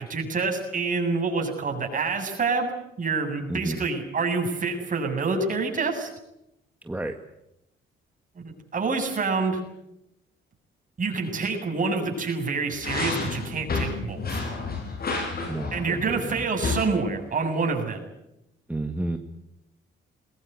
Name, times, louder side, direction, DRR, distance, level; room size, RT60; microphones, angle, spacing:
voice 1, 0.0-2.7 3.0-6.1 8.4-9.6 11.0-14.4 15.7-18.0, right 4 dB, 40° right, 3 dB, 7.6 m, -27 dB
voice 2, 3.5-3.8 6.8-7.2 15.5-16.4 18.7-19.2, right 1 dB, 10° right, 5 dB, 1.8 m, -31 dB
sound 1, 12.7-16.8, left 3 dB, 50° left, 7.4 m, -30 dB
21.5 x 21.0 x 9.6 m, 0.85 s
cardioid pair, 90°, 20 cm